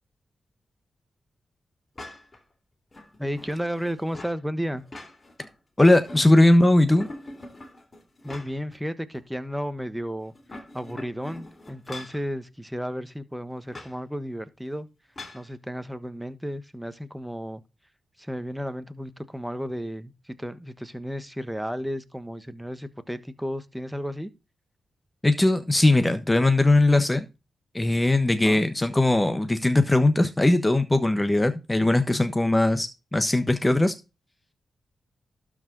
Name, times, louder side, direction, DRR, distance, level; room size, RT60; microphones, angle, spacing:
sound 1, 2.0-2.4 2.9-4.4 4.8-5.5 5.8-6.6 7.0-8.8 9.1-9.2 10.3-12.2 13.7-14.0 15.2-15.5, left 2 dB, 35° left, 2.8 m, -43 dB
voice 1, 3.2-4.8 8.2-10.3 10.7-14.9 15.3-17.6 18.2-24.3 28.4-28.6, equal, 5° right, 1.3 m, -33 dB
voice 2, 5.8-7.1 25.2-27.2 27.7-33.9, left 2 dB, 15° left, 1.2 m, -20 dB
12.0 x 4.9 x 4.0 m
supercardioid pair, 50°, 0 cm